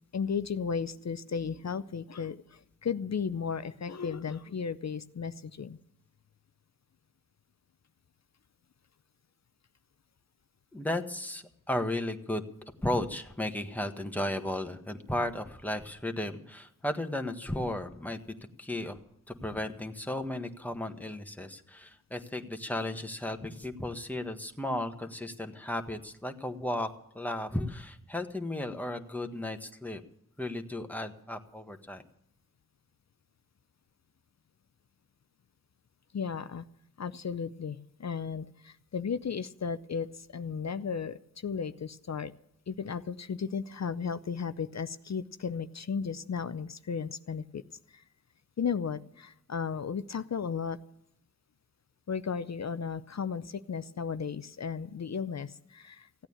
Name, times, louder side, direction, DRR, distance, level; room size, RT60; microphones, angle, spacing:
voice 1, 0.1-5.8 36.1-36.6 37.0-42.3 42.7-47.6 47.9-48.0 48.6-50.8 52.1-56.3, left 6 dB, 50° left, 13 dB, 0.6 m, -35 dB
voice 2, 10.7-12.4 12.8-18.2 18.6-19.0 19.3-30.0 30.4-32.0, left 1 dB, 5° left, 5 dB, 1.5 m, -34 dB
16.0 x 8.9 x 8.7 m, 0.76 s
cardioid pair, 50°, 35 cm